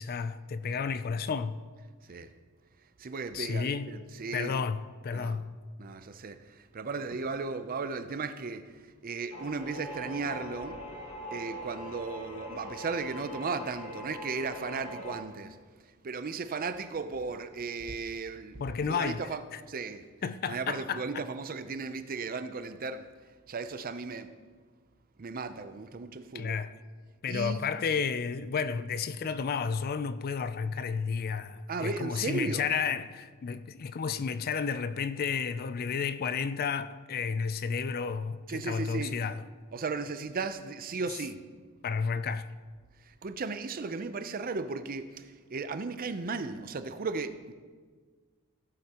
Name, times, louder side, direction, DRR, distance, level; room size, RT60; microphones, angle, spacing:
voice 1, 0.0-1.6 3.3-3.9 4.3-5.5 18.6-19.2 19.5-19.6 20.2-21.2 26.3-26.7 27.2-39.4 41.8-42.5, left 6 dB, 40° left, 0.4 m, -32 dB
voice 2, 3.0-4.6 5.1-5.4 5.8-10.8 11.3-15.6 16.0-18.6 18.9-19.4 19.7-20.0 20.5-23.1 23.5-24.3 25.2-26.6 27.3-27.6 31.7-32.7 38.5-39.2 39.7-41.4 43.1-47.5, right 4 dB, 40° right, 0.5 m, -36 dB
sound 1, 9.3-15.2, equal, 75° left, 1.9 m, -42 dB
17.0 x 8.0 x 2.9 m
head